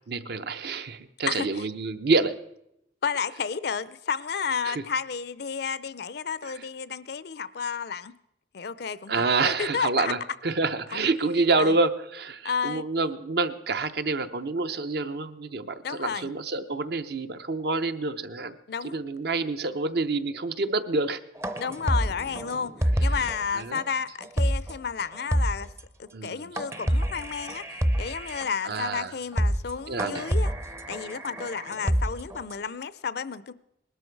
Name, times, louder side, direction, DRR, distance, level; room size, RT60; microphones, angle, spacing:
voice 1, 0.1-2.3 4.7-4.8 6.4-6.5 9.1-18.6 18.8-21.2 23.5-23.8 26.1-26.5 28.6-29.1 29.9-30.3, right 3 dB, 55° right, 0.7 m, -27 dB
voice 2, 1.3-1.6 3.0-8.1 8.5-10.1 10.9-11.1 11.6-11.8 12.4-12.8 15.8-16.3 18.7-19.0 21.6-25.7 26.0-30.5 30.9-33.5, left 6 dB, 60° left, 0.5 m, -32 dB
sound 1, 21.4-23.4 23.7-23.8 24.2-24.7 25.0-25.1 25.3-25.8 26.6-28.4 28.9-29.0 29.2-29.7 30.0-32.5, equal, 15° right, 0.6 m, -27 dB
20.0 x 12.5 x 4.6 m
head